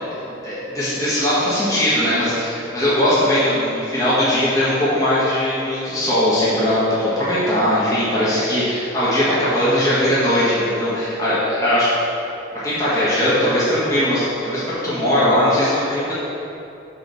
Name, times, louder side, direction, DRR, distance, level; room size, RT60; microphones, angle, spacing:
voice 1, 0.1-11.9 12.2-12.3 12.6-16.1, left 1 dB, 20° left, -11 dB, 1.5 m, -19 dB
6.3 x 4.1 x 6.3 m, 2.8 s
head